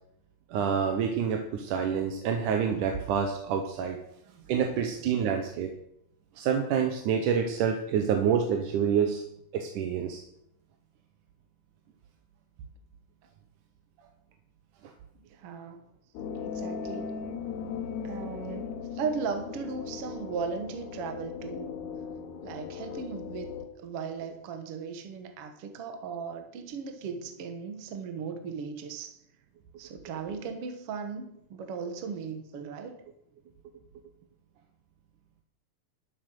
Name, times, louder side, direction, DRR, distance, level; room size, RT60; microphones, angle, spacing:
voice 1, 0.5-4.0 4.5-5.7 6.4-9.2 9.5-10.2, right 7 dB, 75° right, 4 dB, 2.4 m, -27 dB
voice 2, 4.2-4.6 15.3-15.8 16.4-17.2 18.0-21.8 22.4-23.5 23.8-29.2 29.8-33.0, right 5 dB, 55° right, 6 dB, 1.9 m, -37 dB
sound 1, 16.1-23.7, left 6 dB, 70° left, 2.4 m, -38 dB
12.0 x 8.0 x 6.3 m, 0.76 s
omnidirectional pair, 3.8 m